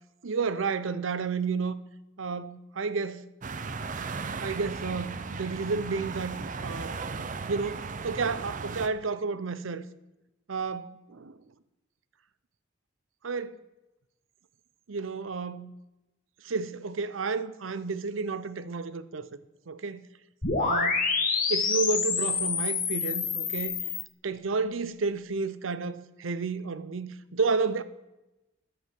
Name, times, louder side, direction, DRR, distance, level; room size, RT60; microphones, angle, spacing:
voice 1, 0.2-1.8 2.2-3.2 4.4-6.4 6.6-7.0 7.5-9.9 10.5-11.4 13.2-13.6 14.9-15.7 16.4-19.4 19.7-20.0 20.6-21.0 21.5-23.7 24.2-27.8, right 4 dB, 85° right, 0.7 m, -31 dB
sound 1, 3.4-8.9, right 4 dB, 40° right, 0.6 m, -36 dB
sound 2, 20.4-24.0, left 5 dB, 45° left, 1.6 m, -27 dB
11.0 x 7.6 x 6.0 m
head